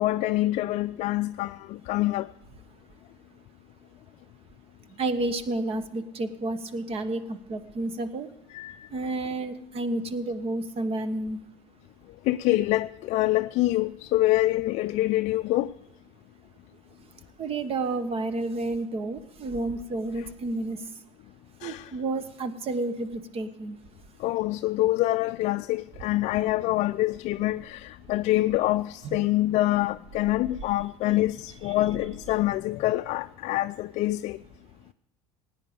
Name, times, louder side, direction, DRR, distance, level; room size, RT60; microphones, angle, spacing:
voice 1, 0.0-2.3 8.5-8.9 12.2-15.7 21.6-21.9 24.2-34.4, left 16 dB, 55° left, 0.4 m, -26 dB
voice 2, 4.9-8.3 8.9-11.4 17.4-20.9 21.6-23.8 29.0-29.2, right 2 dB, 40° right, 1.2 m, -30 dB
sound 1, 25.7-25.8 26.2-26.5 26.8-26.9 27.2-27.9 28.4-32.6, right 4 dB, 75° right, 1.9 m, -48 dB
16.5 x 9.5 x 5.2 m
hypercardioid pair, 85°, 15 cm